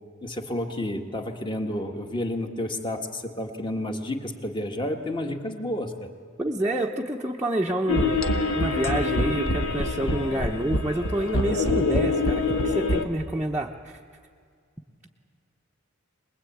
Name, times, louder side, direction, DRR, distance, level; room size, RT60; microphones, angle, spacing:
voice 1, 0.2-6.1, left 1 dB, 25° left, 4 dB, 1.7 m, -30 dB
voice 2, 6.4-8.2 8.5-14.0, right 1 dB, 10° right, -3 dB, 0.9 m, -28 dB
sound 1, 7.9-13.0, left 2 dB, 75° left, 1.4 m, -25 dB
23.5 x 20.5 x 8.6 m, 2.1 s
head